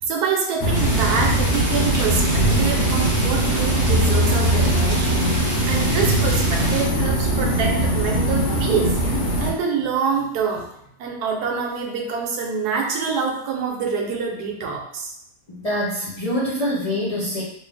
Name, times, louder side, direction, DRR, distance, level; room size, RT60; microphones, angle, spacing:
voice 1, 0.0-8.9 9.4-10.7 11.0-15.1, right 6 dB, 70° right, 0 dB, 1.2 m, -26 dB
sound 1, 0.6-9.5, right 1 dB, 75° left, 1.3 m, -20 dB
sound 2, 0.7-6.8, right 1 dB, 55° right, 0.5 m, -31 dB
voice 2, 15.5-17.4, equal, 55° left, -8 dB, 0.4 m, -25 dB
3.2 x 2.4 x 3.3 m, 0.76 s
omnidirectional pair, 1.8 m